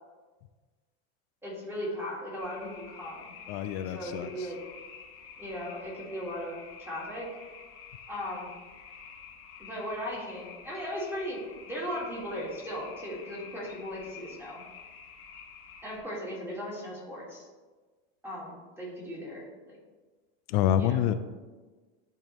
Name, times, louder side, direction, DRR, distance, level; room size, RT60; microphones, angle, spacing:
voice 1, 1.4-3.4 3.9-4.6 5.4-7.3 8.1-8.5 9.6-14.6 15.8-17.5 18.2-19.8 20.8-21.0, equal, 5° right, -5 dB, 1.9 m, -37 dB
sound 1, 2.4-16.0, left 6 dB, 40° left, 1.1 m, -49 dB
voice 2, 3.5-4.5 20.5-21.2, left 11 dB, 65° left, 11 dB, 0.5 m, -27 dB
10.5 x 3.5 x 3.1 m, 1.3 s
supercardioid pair, 140°, 35 cm